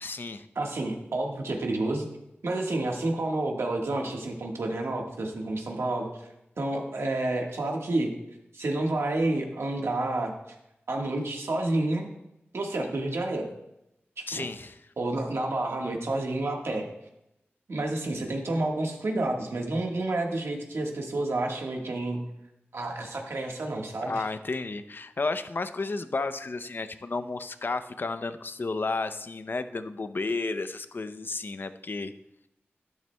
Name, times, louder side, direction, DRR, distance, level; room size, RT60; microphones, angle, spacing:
voice 1, 0.0-0.5 14.3-14.8 24.0-32.1, left 3 dB, 55° left, 11 dB, 0.6 m, -32 dB
voice 2, 0.5-2.1 2.4-6.1 6.6-8.1 8.5-10.3 10.9-12.1 12.5-13.5 14.2-14.5 15.0-16.9 17.7-22.2 22.7-24.1, right 2 dB, 85° right, 1 dB, 1.5 m, -29 dB
12.0 x 11.0 x 2.2 m, 0.87 s
wide cardioid pair, 80°, 4 cm